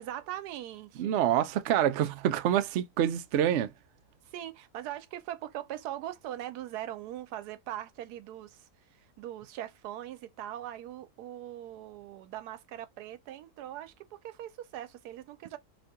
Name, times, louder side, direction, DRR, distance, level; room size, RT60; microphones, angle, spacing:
voice 1, 0.0-1.2 4.2-15.6, right 12 dB, 90° right, 1.1 m, -41 dB
voice 2, 1.0-3.7, right 11 dB, 70° right, 0.6 m, -26 dB
3.0 x 2.7 x 3.4 m
omnidirectional pair, 1.6 m